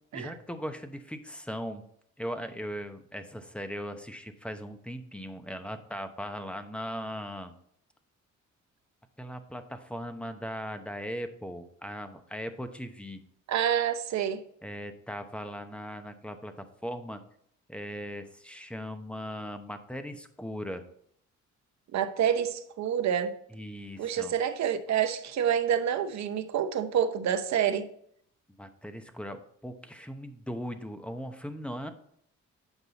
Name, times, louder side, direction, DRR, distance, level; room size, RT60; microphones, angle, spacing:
voice 1, 0.1-1.8 2.2-7.5 9.2-13.2 14.6-17.2 17.7-20.8 23.5-24.3 28.6-31.9, equal, 5° left, 0.9 m, -39 dB
voice 2, 13.5-14.4 21.9-23.4 24.0-27.9, right 9 dB, 65° right, 0.8 m, -28 dB
8.1 x 5.4 x 4.0 m
cardioid pair, 90°, 30 cm